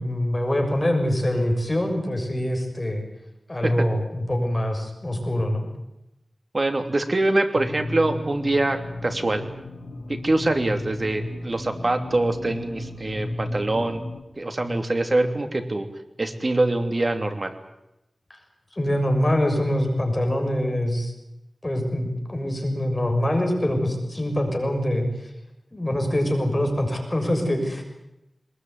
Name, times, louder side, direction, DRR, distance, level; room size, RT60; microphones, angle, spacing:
voice 1, 0.0-3.0 3.5-5.7 18.3-18.4 18.7-21.1 21.6-25.1 25.7-27.8, left 1 dB, 25° left, 3 dB, 6.7 m, -24 dB
voice 2, 6.5-9.4 10.1-14.0 14.4-15.9 16.2-17.5, right 2 dB, 40° right, 7 dB, 3.0 m, -24 dB
sound 1, 7.5-14.2, left 1 dB, 65° left, 2.1 m, -34 dB
22.5 x 21.0 x 9.4 m, 0.89 s
wide cardioid pair, 70°, 0 cm